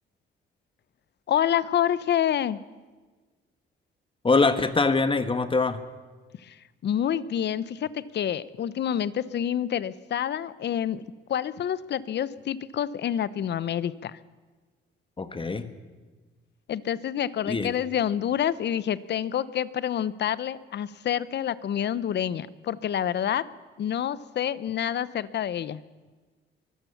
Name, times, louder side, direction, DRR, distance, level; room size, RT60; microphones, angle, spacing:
voice 1, 1.3-2.6 6.4-6.6 6.8-14.2 16.7-23.5 23.8-25.8, left 10 dB, 60° left, 17 dB, 0.9 m, -28 dB
voice 2, 4.2-5.8 15.2-15.7 17.5-17.7, left 3 dB, 25° left, 10 dB, 1.5 m, -23 dB
23.5 x 15.5 x 7.2 m, 1.3 s
cardioid pair, 90°, 20 cm